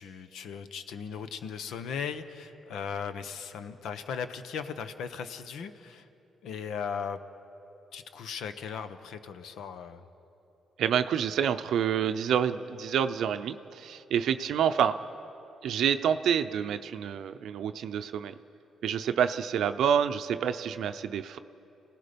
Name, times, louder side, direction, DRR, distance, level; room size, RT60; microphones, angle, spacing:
voice 1, 0.0-6.1 6.4-7.2 7.9-10.1, left 6 dB, 75° left, 10 dB, 1.0 m, -37 dB
voice 2, 10.8-15.0 15.6-18.4 18.8-21.4, right 8 dB, 75° right, 9 dB, 0.6 m, -28 dB
29.0 x 18.0 x 5.2 m, 2.9 s
cardioid pair, 90°, 0 cm